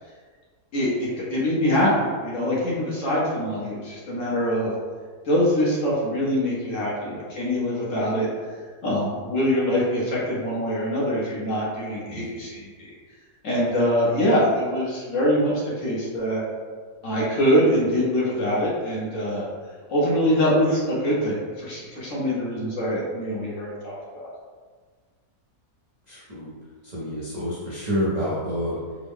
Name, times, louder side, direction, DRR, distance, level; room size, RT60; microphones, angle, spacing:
voice 1, 0.7-4.7 5.2-8.3 8.8-12.9 13.4-16.4 17.0-19.4 19.9-24.3, equal, 60° left, -6 dB, 1.2 m, -24 dB
voice 2, 26.1-26.5 26.8-28.8, equal, 50° right, -8 dB, 0.5 m, -28 dB
3.6 x 2.0 x 3.5 m, 1.5 s
omnidirectional pair, 1.6 m